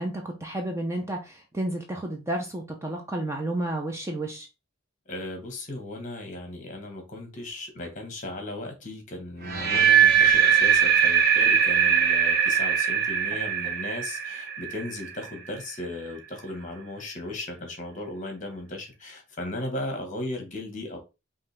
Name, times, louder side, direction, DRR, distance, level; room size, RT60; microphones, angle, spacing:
voice 1, 0.0-4.5, right 1 dB, 15° right, 0.7 m, -31 dB
voice 2, 5.1-21.0, left 1 dB, 40° left, 1.4 m, -36 dB
sound 1, 9.4-15.5, right 8 dB, 50° right, 1.0 m, -21 dB
5.5 x 2.8 x 3.4 m
head